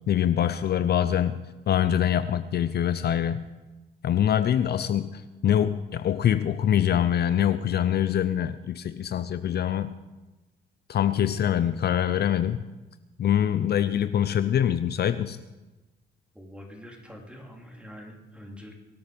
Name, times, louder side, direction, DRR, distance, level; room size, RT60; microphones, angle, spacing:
voice 1, 0.1-3.5 4.0-9.9 10.9-12.7 13.2-15.4, left 10 dB, 55° left, 12 dB, 0.6 m, -24 dB
voice 2, 16.3-18.7, equal, 5° right, 0 dB, 3.2 m, -45 dB
23.0 x 8.9 x 5.2 m, 1.1 s
cardioid pair, 90°, 20 cm